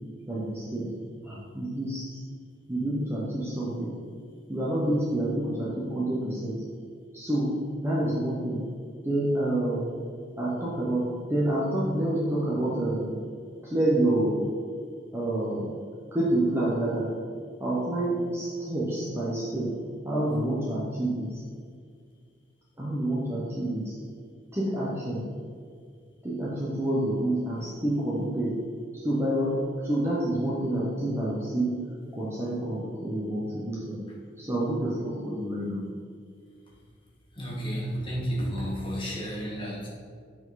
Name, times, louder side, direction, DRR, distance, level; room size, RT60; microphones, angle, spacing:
voice 1, 0.3-0.9 1.2-2.2 2.7-3.9 4.5-6.5 7.1-7.6 7.8-8.6 9.0-9.9 10.4-13.2 13.6-14.4 15.1-15.7 16.1-17.1 17.6-19.8 20.0-21.4 22.8-23.9 24.5-25.3 26.2-28.6 28.9-29.5 29.8-31.8 32.1-34.1 34.4-35.8, right 1 dB, 15° right, -7 dB, 1.0 m, -28 dB
voice 2, 37.4-39.9, equal, 25° left, -3 dB, 1.5 m, -31 dB
8.5 x 4.9 x 4.0 m, 2.1 s
head